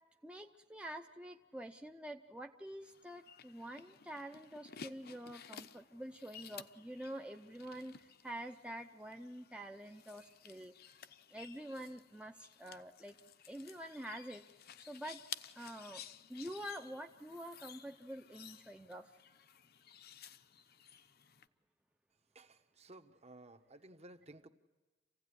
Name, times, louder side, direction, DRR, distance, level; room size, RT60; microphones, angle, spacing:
voice 1, 0.2-10.7 11.3-13.2 13.5-14.5 14.8-15.2 15.6-16.0 16.3-19.1, right 1 dB, 5° right, 4 dB, 0.7 m, -47 dB
sound 1, 2.8-21.5, left 8 dB, 55° left, 0.8 m, -55 dB
voice 2, 22.3-24.5, right 2 dB, 35° right, 8 dB, 1.2 m, -56 dB
28.0 x 16.5 x 9.9 m, 1.3 s
head